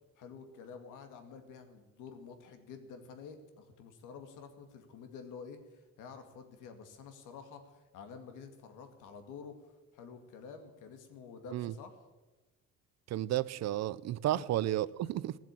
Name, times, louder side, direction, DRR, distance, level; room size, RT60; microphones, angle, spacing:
voice 1, 0.2-9.6 9.9-11.9 14.3-14.4, left 5 dB, 85° left, 7 dB, 2.1 m, -49 dB
voice 2, 13.1-15.4, right 13 dB, 60° right, 18 dB, 0.6 m, -32 dB
17.5 x 7.6 x 9.9 m, 1.2 s
cardioid pair, 150°, 30 cm